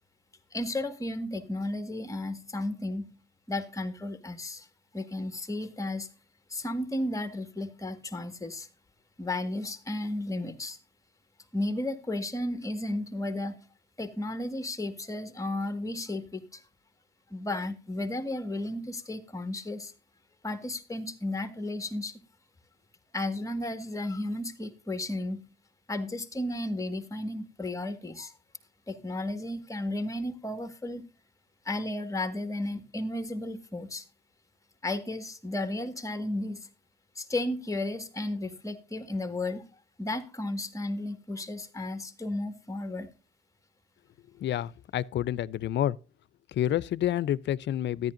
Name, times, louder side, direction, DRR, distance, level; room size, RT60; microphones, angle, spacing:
voice 1, 0.5-3.1 3.5-4.7 4.9-6.1 6.5-8.7 9.2-10.8 11.5-13.6 14.0-16.6 17.3-19.9 20.4-22.1 23.1-25.4 25.9-28.3 28.9-31.0 31.7-34.1 34.8-36.7 37.2-39.6 40.0-43.1, left 1 dB, 15° left, 1.7 m, -33 dB
voice 2, 44.4-46.0 46.5-48.1, left 11 dB, 65° left, 0.5 m, -29 dB
13.5 x 10.5 x 2.6 m
cardioid pair, 90°, 20 cm